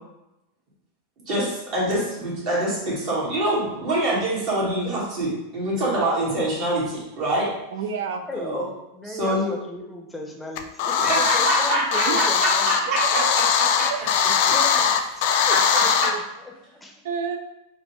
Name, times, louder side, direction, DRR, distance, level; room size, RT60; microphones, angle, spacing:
voice 1, 1.2-7.5 8.3-8.7 9.0-9.5 11.0-14.1 15.5-15.8, right 1 dB, 50° right, -6 dB, 1.5 m, -25 dB
voice 2, 7.7-8.2 12.1-12.2 12.9-13.3 13.9-14.1 16.0-16.2 17.0-17.4, right 6 dB, 75° right, 7 dB, 0.4 m, -28 dB
voice 3, 8.3-12.8 14.5-15.0 15.5-16.2 16.7-17.0, left 2 dB, 5° left, 0 dB, 0.6 m, -36 dB
sound 1, 10.6-16.1, left 7 dB, 60° left, 0.3 m, -21 dB
4.0 x 2.1 x 3.0 m, 0.92 s
hypercardioid pair, 120°, 0 cm